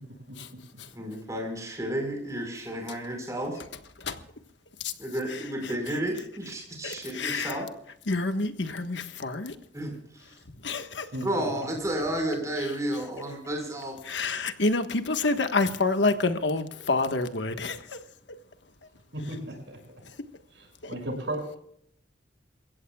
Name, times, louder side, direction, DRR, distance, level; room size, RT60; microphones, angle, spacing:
voice 1, 0.3-0.6 11.1-11.3 19.1-19.8 20.5-21.6, right 1 dB, 85° right, 6.7 m, -35 dB
voice 2, 0.9-3.6 5.0-7.7 9.7-10.4 11.2-14.0, right 1 dB, 20° right, 4.9 m, -32 dB
voice 3, 6.8-7.6 8.1-9.5 10.6-11.1 14.1-18.0 20.8-20.9, left 3 dB, 90° left, 1.4 m, -28 dB
29.0 x 16.0 x 2.4 m
head